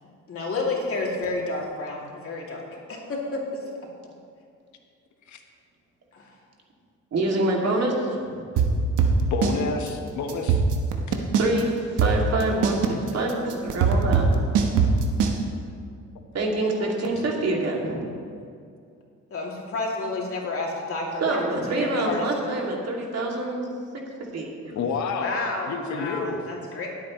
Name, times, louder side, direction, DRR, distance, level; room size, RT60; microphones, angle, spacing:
voice 1, 0.3-3.4 6.1-6.3 19.3-21.4 21.8-22.3 25.2-26.9, left 3 dB, 50° left, -2 dB, 2.7 m, -30 dB
voice 2, 7.1-8.4 11.4-12.8 13.1-14.3 16.3-18.1 21.2-23.7 24.3-24.7, right 2 dB, 55° right, -1 dB, 2.6 m, -26 dB
sound 1, 8.6-9.6 9.9-10.0 10.3-11.6 12.0-15.4, right 6 dB, 85° right, 1.2 m, -20 dB
voice 3, 9.3-10.6 24.7-25.3 25.7-26.4, left 5 dB, 70° left, 4 dB, 1.3 m, -29 dB
19.5 x 8.5 x 3.2 m, 2.3 s
cardioid pair, 90°, 30 cm